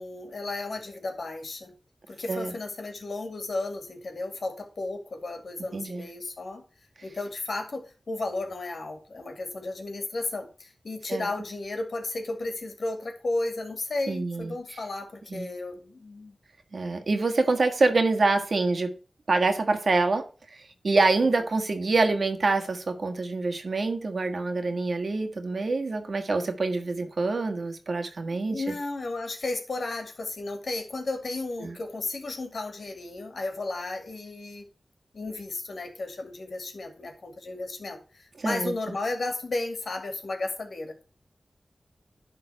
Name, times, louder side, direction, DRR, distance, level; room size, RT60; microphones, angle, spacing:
voice 1, 0.0-1.7 2.1-6.6 7.0-16.3 21.2-21.4 28.3-34.7 35.1-40.9, left 2 dB, 70° left, 2.2 m, -34 dB
voice 2, 5.7-6.0 11.1-11.3 14.1-14.5 15.3-15.5 16.7-18.9 19.3-20.2 20.5-28.7 31.6-31.8 38.4-38.7, right 3 dB, 70° right, 1.6 m, -26 dB
11.0 x 3.8 x 5.5 m
wide cardioid pair, 60°, 0 cm